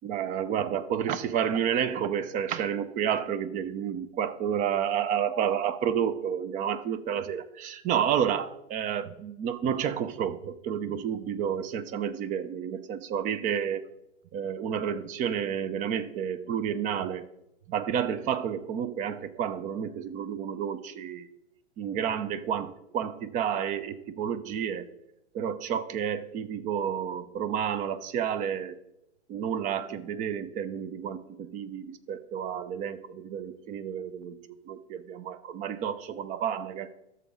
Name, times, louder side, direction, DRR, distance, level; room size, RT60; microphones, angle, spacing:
voice 1, 0.0-13.8 14.3-17.3 17.7-21.3 21.8-24.9 25.3-28.8 29.3-34.4 34.7-36.9, right 8 dB, 25° right, 14 dB, 0.5 m, -30 dB
12.5 x 7.1 x 3.7 m, 0.84 s
hypercardioid pair, 125°, 35 cm